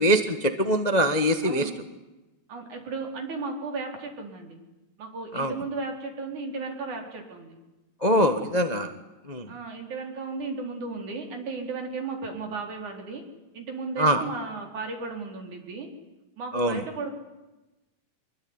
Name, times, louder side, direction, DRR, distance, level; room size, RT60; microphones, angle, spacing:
voice 1, 0.0-1.7 5.3-5.5 8.0-8.9 9.3-9.5 14.0-14.2 16.5-16.8, equal, 25° left, 8 dB, 0.8 m, -23 dB
voice 2, 1.4-1.7 2.5-4.6 5.0-7.6 9.5-13.2 13.5-15.9 16.4-17.2, right 3 dB, 80° right, 3 dB, 5.8 m, -35 dB
25.5 x 23.0 x 9.8 m, 1.0 s
omnidirectional pair, 3.4 m